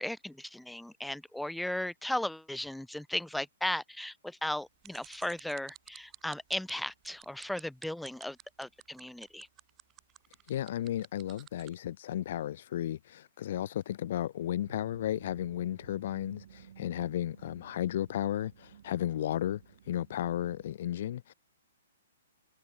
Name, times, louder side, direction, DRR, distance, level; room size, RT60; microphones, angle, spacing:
voice 1, 0.0-9.5, left 1 dB, ahead, 0.4 m, -36 dB
sound 1, 4.8-11.7, right 13 dB, 20° right, 3.7 m, -52 dB
voice 2, 10.5-21.3, left 12 dB, 50° left, 0.6 m, -34 dB
sound 2, 14.6-20.6, right 9 dB, 60° right, 8.0 m, -56 dB
hypercardioid pair, 160°, 0 cm